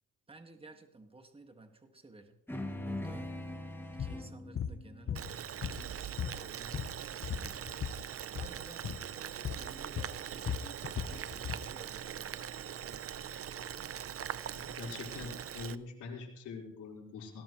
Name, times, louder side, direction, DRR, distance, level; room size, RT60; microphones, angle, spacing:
voice 1, 0.3-2.4 2.8-3.3 4.0-7.7 8.4-12.6, right 2 dB, 20° right, 5 dB, 2.0 m, -55 dB
sound 1, 2.5-7.2, left 1 dB, 5° left, 2.4 m, -43 dB
sound 2, 4.0-4.2 4.5-4.8 5.1-5.9 6.2-8.0 8.3-8.5 8.8-9.0 9.4-9.7 10.0-11.7, left 8 dB, 45° left, 1.1 m, -37 dB
Boiling, 5.1-15.8, right 9 dB, 50° right, 0.7 m, -42 dB
voice 2, 14.5-17.4, left 4 dB, 80° left, -2 dB, 4.7 m, -44 dB
19.0 x 17.5 x 3.2 m, 0.74 s
cardioid pair, 90°, 30 cm